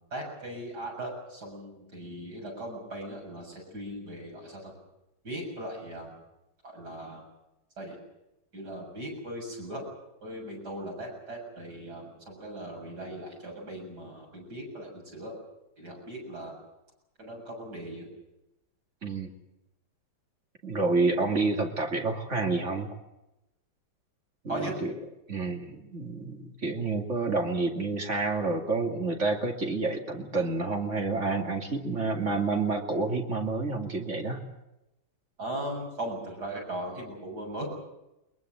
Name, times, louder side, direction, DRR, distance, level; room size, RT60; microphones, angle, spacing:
voice 1, 0.1-4.7 5.2-6.1 6.6-7.2 7.8-8.0 8.5-9.8 10.2-15.3 15.8-16.5 17.2-18.1 24.5-24.7 35.4-37.7, right 1 dB, 65° right, 0 dB, 7.9 m, -38 dB
voice 2, 19.0-19.3 20.6-22.9 24.4-24.9 25.3-34.4, right 3 dB, 40° right, 4 dB, 2.8 m, -29 dB
23.0 x 21.5 x 7.8 m, 0.93 s
omnidirectional pair, 1.9 m